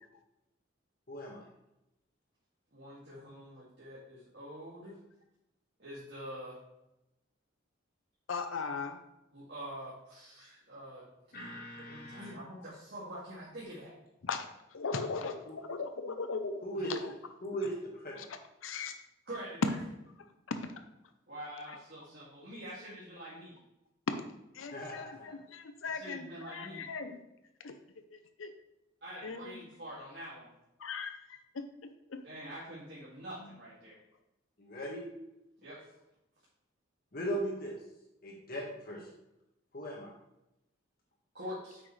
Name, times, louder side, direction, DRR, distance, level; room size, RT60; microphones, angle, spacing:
voice 1, 1.1-1.4 11.3-12.3 15.5-15.6 16.6-16.9 17.4-18.2 24.7-25.3 34.6-35.0 37.1-37.8 38.2-39.1 39.7-40.1, equal, 45° left, -3 dB, 1.6 m, -38 dB
voice 2, 2.7-5.0 5.8-6.6 9.3-13.9 16.8-16.9 19.3-19.8 21.3-23.6 25.9-26.9 29.0-30.5 32.2-34.0 35.1-35.2 35.6-35.8 41.3-41.8, equal, 55° right, -8 dB, 2.1 m, -45 dB
voice 3, 8.3-9.0 14.2-14.5 14.7-17.1 18.2-18.3 18.6-18.9 20.5-20.6 21.7-21.8 24.5-27.2 27.6-27.8 28.1-28.5 29.2-29.7 30.8-32.2, left 4 dB, 85° left, 8 dB, 0.6 m, -39 dB
8.9 x 6.1 x 3.2 m, 0.90 s
head